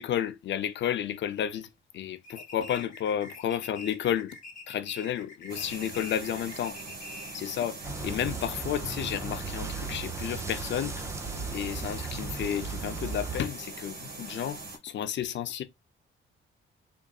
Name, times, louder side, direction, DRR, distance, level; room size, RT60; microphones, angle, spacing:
voice 1, 0.0-4.4 4.7-6.8 7.3-11.1 11.5-15.6, left 10 dB, 60° left, 0.5 m, -32 dB
sound 1, 2.2-7.5, left 2 dB, 35° left, 1.0 m, -46 dB
sound 2, 5.5-14.8, right 3 dB, 45° right, 1.1 m, -42 dB
sound 3, 7.8-13.4, right 4 dB, 15° right, 0.4 m, -37 dB
3.8 x 3.4 x 2.3 m
wide cardioid pair, 180°, 21 cm